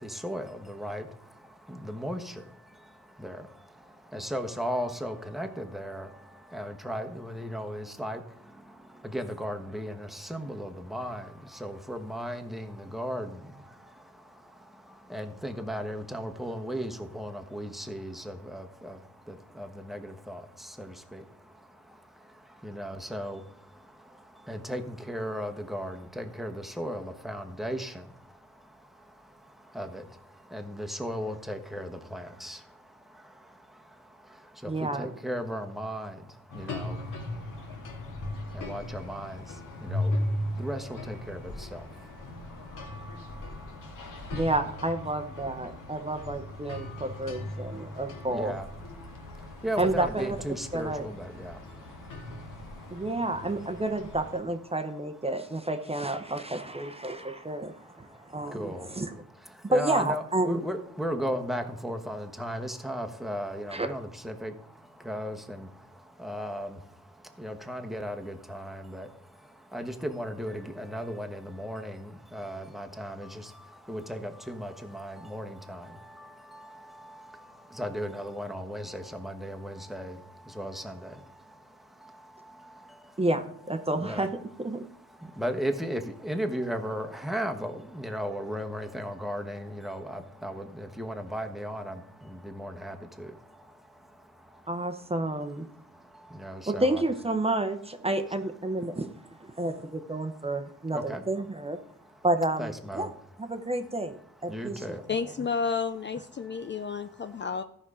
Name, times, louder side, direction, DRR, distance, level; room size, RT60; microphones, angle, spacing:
voice 1, 0.0-44.4 46.0-46.1 46.6-47.0 47.6-48.7 49.0-53.2 57.1-83.2 83.9-84.3 84.7-94.9 95.7-97.0 98.9-99.0 99.5-99.7 100.2-100.3 100.6-101.2 102.0-102.2 102.6-103.1 103.5-103.7 104.5-105.1 106.4-107.2, equal, ahead, 4 dB, 1.2 m, -37 dB
voice 2, 34.7-35.1 44.3-48.5 49.8-50.4 50.7-51.0 52.9-59.1 59.6-60.6 63.7-63.9 83.2-84.9 94.7-95.7 96.7-99.1 99.4-101.8 102.2-103.1 103.4-104.8, right 1 dB, 20° right, 8 dB, 0.9 m, -30 dB
sound 1, 36.5-54.4, left 1 dB, 85° left, 2.1 m, -38 dB
voice 3, 105.1-107.6, left 5 dB, 35° left, 10 dB, 0.5 m, -31 dB
14.0 x 5.4 x 4.9 m, 0.70 s
cardioid pair, 90°, 31 cm